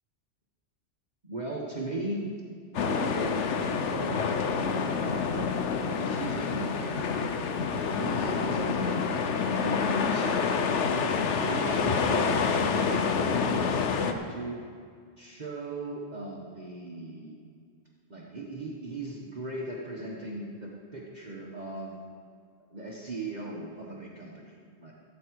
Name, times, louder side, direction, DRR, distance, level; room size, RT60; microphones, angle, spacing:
voice 1, 1.2-2.3 2.7-4.3 4.9-5.5 5.8-14.6 15.2-17.4 18.1-22.0 22.7-24.9, right 1 dB, 40° right, -3 dB, 1.3 m, -38 dB
sound 1, 2.7-14.1, left 5 dB, 75° left, 1.1 m, -28 dB
15.5 x 8.6 x 4.7 m, 2.2 s
omnidirectional pair, 1.2 m